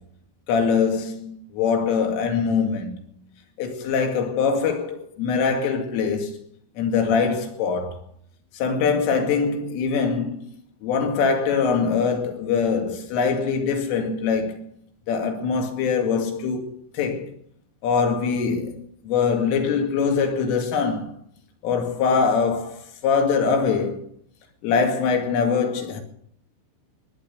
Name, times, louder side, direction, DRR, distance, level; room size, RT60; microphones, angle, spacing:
voice 1, 0.5-3.0 3.6-6.4 6.8-7.9 8.6-10.4 10.8-14.6 15.1-17.3 17.8-21.1 21.6-24.0 24.6-26.0, left 5 dB, 90° left, 4.9 m, -23 dB
19.5 x 10.0 x 6.8 m
omnidirectional pair, 5.6 m